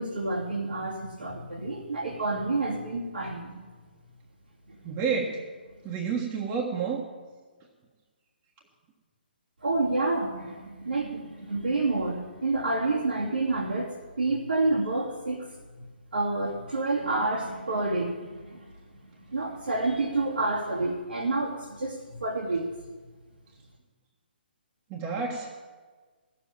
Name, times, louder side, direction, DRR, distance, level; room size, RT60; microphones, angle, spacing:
voice 1, 0.0-3.6 9.6-13.9 14.2-15.5 16.1-18.7 19.3-22.6, right 2 dB, 85° right, -6 dB, 2.7 m, -29 dB
voice 2, 4.8-5.4 5.8-7.0 24.9-25.5, right 5 dB, 25° right, -1 dB, 1.5 m, -29 dB
14.5 x 7.6 x 8.9 m, 1.4 s
hypercardioid pair, 145°, 6 cm